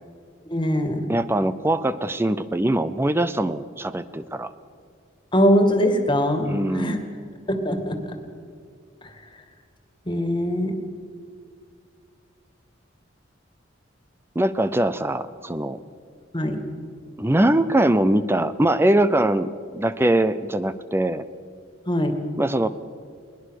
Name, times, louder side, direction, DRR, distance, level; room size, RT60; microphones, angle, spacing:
voice 1, 0.5-1.0 5.3-7.0 7.5-8.0 10.1-10.7 16.3-16.6 21.9-22.1, equal, 25° left, 6 dB, 2.1 m, -21 dB
voice 2, 1.1-4.5 6.4-7.1 14.4-15.8 17.2-21.2 22.4-22.7, right 1 dB, 10° right, 14 dB, 0.5 m, -22 dB
21.5 x 20.0 x 6.5 m, 2.1 s
head